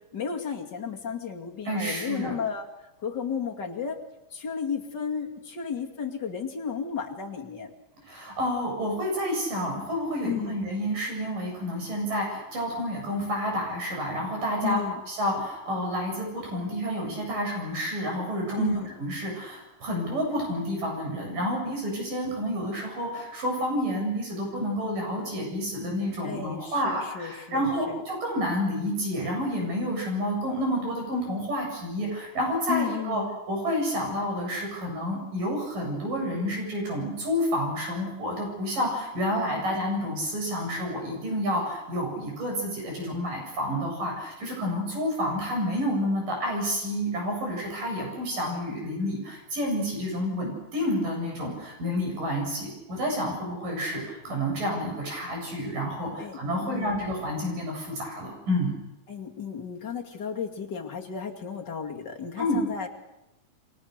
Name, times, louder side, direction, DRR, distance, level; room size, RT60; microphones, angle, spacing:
voice 1, 0.0-2.7 3.0-4.0 4.3-7.7 10.2-10.6 14.6-15.0 18.6-18.9 26.2-28.0 32.7-33.3 56.2-57.0 59.1-62.9, left 7 dB, 35° left, 1 dB, 2.6 m, -33 dB
voice 2, 1.7-2.3 8.0-14.8 15.1-33.2 33.5-58.7 62.4-62.6, equal, 85° right, 0 dB, 9.8 m, -29 dB
28.5 x 24.0 x 6.7 m, 0.95 s
omnidirectional pair, 3.7 m